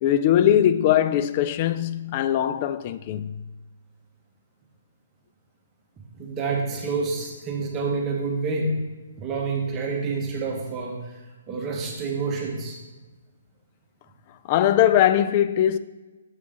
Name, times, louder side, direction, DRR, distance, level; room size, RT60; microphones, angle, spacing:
voice 1, 0.0-3.4 14.5-15.8, left 11 dB, 35° left, 0.3 m, -20 dB
voice 2, 6.1-8.8 9.2-12.8, right 4 dB, 20° right, 1.1 m, -28 dB
7.2 x 3.6 x 5.0 m
hypercardioid pair, 145°, 0 cm